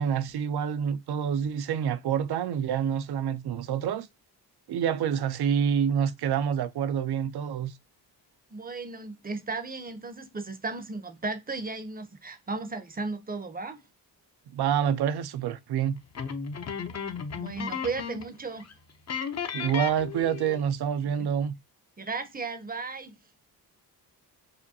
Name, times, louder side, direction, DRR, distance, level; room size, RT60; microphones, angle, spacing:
voice 1, 0.0-4.1 4.7-7.7 14.5-16.0 19.5-21.5, right 8 dB, 60° right, 0.5 m, -27 dB
voice 2, 8.5-13.8 17.3-18.7 22.0-23.1, right 3 dB, 20° right, 0.7 m, -35 dB
sound 1, 16.1-18.4 18.6-18.7 19.1-20.7, left 6 dB, 35° left, 0.7 m, -34 dB
5.0 x 2.2 x 2.7 m
cardioid pair, 60°, 45 cm